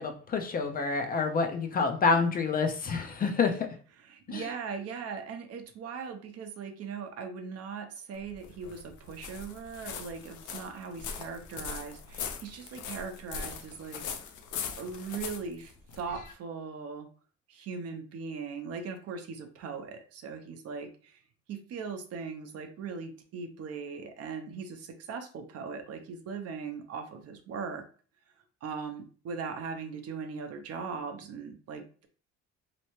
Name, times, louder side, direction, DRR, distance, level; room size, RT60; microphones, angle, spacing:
voice 1, 0.0-3.7 4.3-4.5, left 4 dB, 30° left, 5 dB, 0.4 m, -28 dB
voice 2, 4.0-14.0 14.7-17.1 17.5-21.2 21.5-27.8 28.6-32.1, right 5 dB, 55° right, 6 dB, 0.6 m, -39 dB
sound 1, 8.1-16.3, left 7 dB, 90° left, 0.6 m, -41 dB
3.2 x 2.9 x 3.0 m, 0.41 s
cardioid pair, 165°, 29 cm